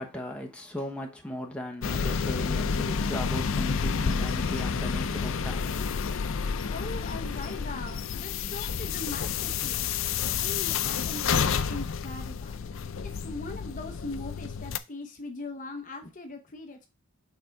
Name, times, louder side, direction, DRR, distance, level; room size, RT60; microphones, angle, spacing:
voice 1, 0.0-5.9, left 1 dB, 5° left, 1.1 m, -37 dB
sound 1, 1.8-14.8, left 6 dB, 70° left, 0.5 m, -30 dB
voice 2, 6.7-10.0 10.4-12.6 13.0-16.9, left 2 dB, 40° left, 0.8 m, -40 dB
6.6 x 3.5 x 4.7 m
head